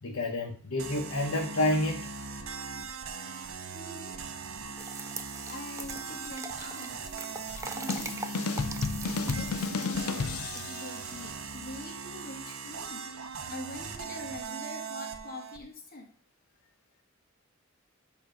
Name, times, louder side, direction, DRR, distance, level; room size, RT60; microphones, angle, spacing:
voice 1, 0.0-2.1 3.1-3.4, left 1 dB, 75° left, 1 dB, 0.8 m, -29 dB
sound 1, 0.8-15.6, right 4 dB, 70° right, 0.7 m, -40 dB
voice 2, 2.2-3.1 3.7-4.2 4.7-4.8 5.5-7.1 7.7-8.5 9.0-10.2 10.5-13.1 13.5-16.1 16.6-16.7, left 2 dB, 45° left, 2 dB, 1.1 m, -44 dB
sound 2, 4.8-11.8, right 4 dB, 15° right, 0.3 m, -43 dB
sound 3, 7.5-11.0, left 5 dB, 90° left, 0.5 m, -32 dB
7.0 x 2.8 x 5.1 m, 0.39 s
head